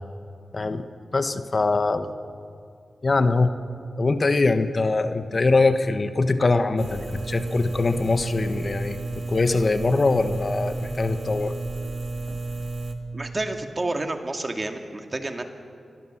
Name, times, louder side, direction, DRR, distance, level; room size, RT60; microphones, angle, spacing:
voice 1, 0.5-0.8 1.1-2.1 3.0-3.5 4.0-11.5, left 3 dB, 45° left, 9 dB, 1.3 m, -22 dB
sound 1, 6.8-12.9, right 2 dB, 60° right, 1.9 m, -32 dB
voice 2, 13.1-15.4, right 2 dB, 35° right, 5 dB, 2.2 m, -29 dB
28.5 x 21.0 x 7.4 m, 2.4 s
cardioid pair, 70°, 0 cm